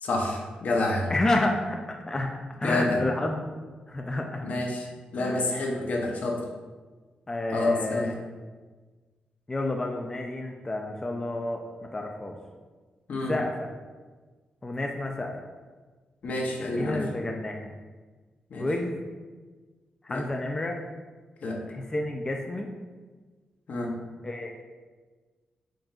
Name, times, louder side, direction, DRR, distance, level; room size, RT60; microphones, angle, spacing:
voice 1, 0.0-1.1 2.6-3.0 4.4-4.9 5.1-6.4 7.5-8.1 13.1-13.4 16.2-17.0 18.5-18.7 20.1-20.2 21.4-21.6 23.7-24.0, left 2 dB, 70° left, 1 dB, 0.7 m, -28 dB
voice 2, 1.1-2.3 2.6-3.5 3.9-4.4 5.2-5.4 7.3-8.1 9.5-12.4 13.3-13.7 14.6-15.4 16.7-17.7 18.6-19.0 20.0-20.8 21.7-22.7 24.2-24.6, left 2 dB, 20° left, 2 dB, 0.4 m, -30 dB
7.3 x 2.6 x 2.3 m, 1.4 s
wide cardioid pair, 105°, 3 cm